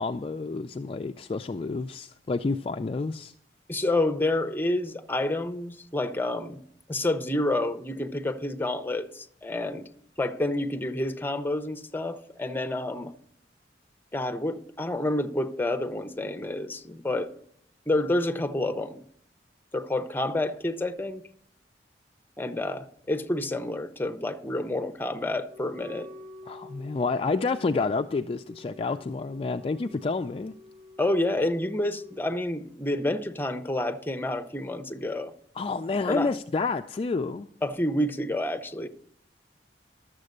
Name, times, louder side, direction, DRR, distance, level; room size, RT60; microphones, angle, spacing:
voice 1, 0.0-3.3 26.5-30.5 35.6-37.5, left 3 dB, 35° left, 0.4 m, -29 dB
voice 2, 3.7-6.6 6.9-9.9 10.2-13.1 14.1-17.3 17.9-19.0 19.7-21.2 22.4-26.1 31.0-35.3 36.1-36.3 37.6-38.9, left 1 dB, 10° left, 0.7 m, -29 dB
Wind instrument woodwind instrument, 25.4-32.4, left 2 dB, 45° right, 4.4 m, -49 dB
12.0 x 7.4 x 6.5 m
head